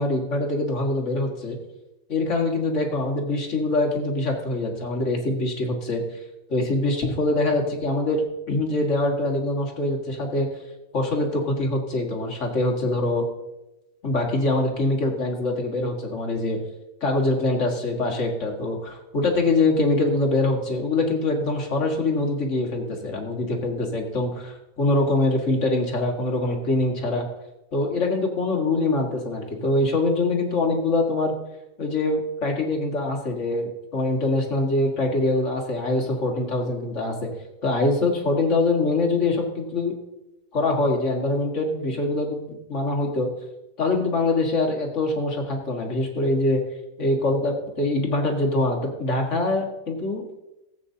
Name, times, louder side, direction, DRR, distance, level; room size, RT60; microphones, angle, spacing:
voice 1, 0.0-1.6 2.1-6.0 6.5-10.5 10.9-13.3 14.0-16.6 17.0-27.3 27.7-31.3 31.8-37.3 37.6-39.9 40.5-43.3 43.8-46.6 47.0-50.4, left 2 dB, 50° left, 1 dB, 1.9 m, -24 dB
18.0 x 8.4 x 2.7 m, 0.95 s
omnidirectional pair, 1.7 m